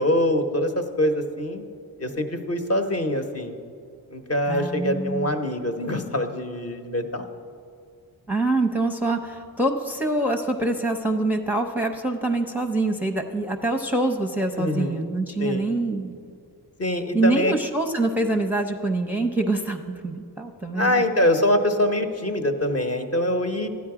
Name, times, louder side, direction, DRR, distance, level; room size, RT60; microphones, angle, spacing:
voice 1, 0.0-1.6 2.0-3.6 4.1-7.2 14.6-15.1 15.4-15.7 16.8-17.5 20.7-23.7, left 1 dB, 40° left, 5 dB, 1.0 m, -24 dB
voice 2, 4.5-5.4 8.3-16.1 17.1-21.0, right 2 dB, 5° right, 3 dB, 0.7 m, -25 dB
13.0 x 9.5 x 4.9 m, 2.4 s
cardioid pair, 90°, 39 cm